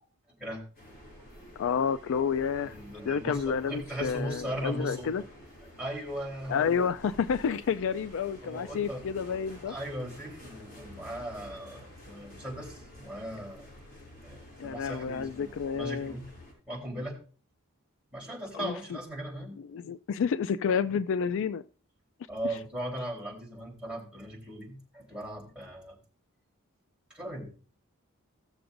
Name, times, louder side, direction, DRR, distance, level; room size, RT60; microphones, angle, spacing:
sound 1, 0.7-16.5, left 1 dB, 45° left, 5.6 m, -50 dB
voice 1, 1.6-2.7 3.1-5.2 6.5-9.7 14.6-16.1 18.5-18.8 19.6-21.6, left 6 dB, 60° left, 0.3 m, -30 dB
voice 2, 2.6-5.1 5.8-6.8 8.4-9.0 9.7-13.7 14.2-16.3 16.7-17.2 18.1-19.6 22.3-26.0 27.1-27.5, right 1 dB, 5° right, 3.6 m, -38 dB
17.0 x 6.8 x 2.6 m
head